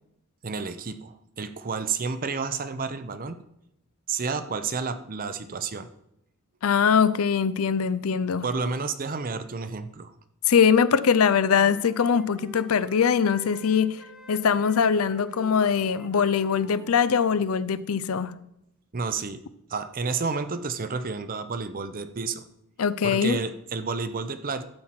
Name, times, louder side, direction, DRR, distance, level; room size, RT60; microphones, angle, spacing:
voice 1, 0.4-3.4 4.1-5.9 8.4-10.1 18.9-19.4 19.7-22.4 23.0-24.6, right 4 dB, 40° right, 0.7 m, -30 dB
voice 2, 6.6-8.5 10.5-14.0 14.3-18.4 22.8-23.4, left 6 dB, 75° left, 0.5 m, -22 dB
Wind instrument woodwind instrument, 10.7-17.4, right 1 dB, 5° right, 1.2 m, -49 dB
12.0 x 4.4 x 7.6 m
head